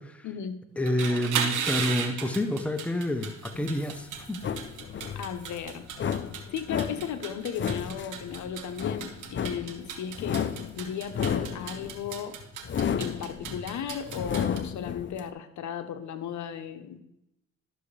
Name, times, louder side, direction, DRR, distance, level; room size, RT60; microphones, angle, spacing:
voice 1, 0.2-0.6 5.1-5.9 6.5-10.4 10.8-12.4 12.8-17.0, left 8 dB, 70° left, 9 dB, 0.9 m, -35 dB
sound 1, 0.7-14.6, right 7 dB, 80° right, 1.3 m, -36 dB
voice 2, 0.8-4.4, left 1 dB, 5° left, 7 dB, 0.8 m, -29 dB
sound 2, 3.5-15.2, left 8 dB, 40° left, 0.6 m, -33 dB
12.0 x 6.9 x 3.3 m, 0.85 s
cardioid pair, 90°, 30 cm